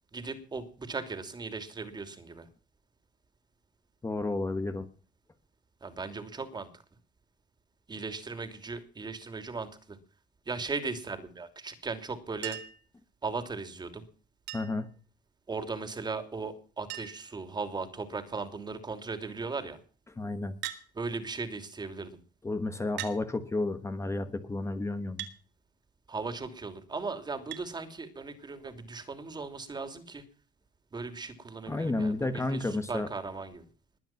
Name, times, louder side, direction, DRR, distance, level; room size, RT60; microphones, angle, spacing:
voice 1, 0.1-2.5 5.8-6.7 7.9-10.0 10.5-12.6 13.2-14.0 15.5-19.8 20.9-22.2 26.1-30.2 30.9-33.7, right 4 dB, 25° right, 9 dB, 3.0 m, -37 dB
voice 2, 4.0-4.9 14.5-14.9 20.2-20.5 22.4-25.3 31.7-33.1, left 2 dB, 15° left, 9 dB, 1.4 m, -31 dB
Chink clink, 12.4-12.9 14.5-14.9 16.3-16.4 16.6-16.7 16.9-17.3 18.1-18.5 20.6-20.9 21.9-22.0 23.0-23.2 25.2-25.4 27.5-27.7 29.1-29.2, right 12 dB, 85° right, 2.3 m, -40 dB
21.0 x 9.1 x 5.9 m, 0.41 s
cardioid pair, 110°, 17 cm